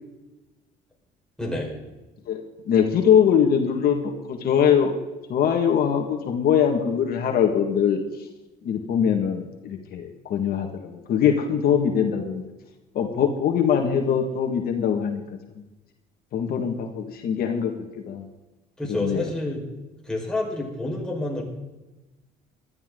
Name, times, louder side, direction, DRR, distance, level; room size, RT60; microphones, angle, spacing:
voice 1, 1.4-1.7 18.8-19.6 20.1-21.4, left 1 dB, 5° left, -3 dB, 4.9 m, -28 dB
voice 2, 2.3-4.9 5.3-8.0 8.6-12.5 12.9-15.2 16.3-18.3 18.8-19.3, left 8 dB, 65° left, 3 dB, 2.0 m, -22 dB
19.0 x 13.0 x 3.9 m, 1.1 s
cardioid pair, 110°, 17 cm